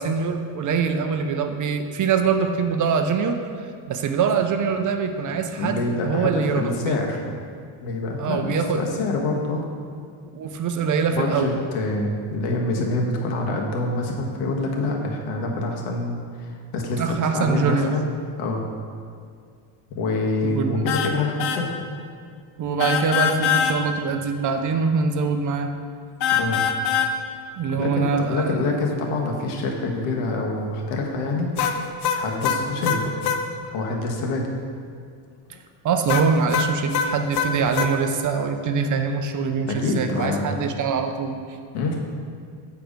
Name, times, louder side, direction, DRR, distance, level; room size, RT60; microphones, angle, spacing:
voice 1, 0.0-3.4 3.9-6.9 8.2-8.8 10.3-11.6 17.0-17.9 20.4-20.9 22.6-25.7 27.6-28.7 35.8-41.4, right 5 dB, 40° right, 6 dB, 0.6 m, -23 dB
voice 2, 5.6-7.2 7.8-9.6 11.1-18.1 18.4-18.6 19.9-21.7 26.3-26.6 27.7-31.5 32.1-33.2 33.7-34.5 39.7-40.7 41.7-42.0, left 2 dB, 85° left, 0 dB, 1.4 m, -26 dB
sound 1, 20.9-21.1 21.4-21.6 22.8-23.8 26.2-27.1 31.6-33.4 36.1-37.9, left 8 dB, 55° left, 0.7 m, -23 dB
8.4 x 4.7 x 5.1 m, 2.2 s
cardioid pair, 120°, 49 cm